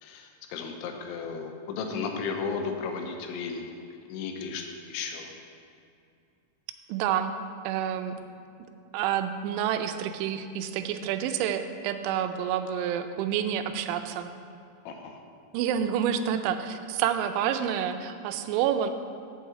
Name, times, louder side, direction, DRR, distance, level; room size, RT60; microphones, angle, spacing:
voice 1, 0.0-3.6 4.1-5.3 14.9-15.2, left 5 dB, 85° left, 4 dB, 3.1 m, -34 dB
voice 2, 6.9-7.3 7.6-8.1 8.9-14.3 15.5-18.9, right 9 dB, 90° right, 8 dB, 3.0 m, -28 dB
7.3 x 5.5 x 7.4 m, 2.4 s
omnidirectional pair, 5.3 m